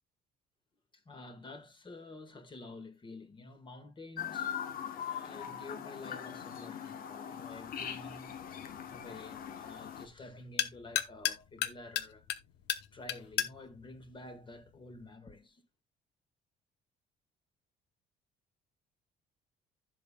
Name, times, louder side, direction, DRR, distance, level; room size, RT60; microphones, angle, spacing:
voice 1, 0.9-12.3 12.9-15.6, left 2 dB, 30° left, 1.7 m, -50 dB
Chirp tweet, 4.2-10.1, left 8 dB, 60° left, 1.2 m, -41 dB
sound 1, 7.5-15.1, left 12 dB, 85° left, 0.8 m, -39 dB
15.0 x 5.6 x 2.2 m
cardioid pair, 110°, 17 cm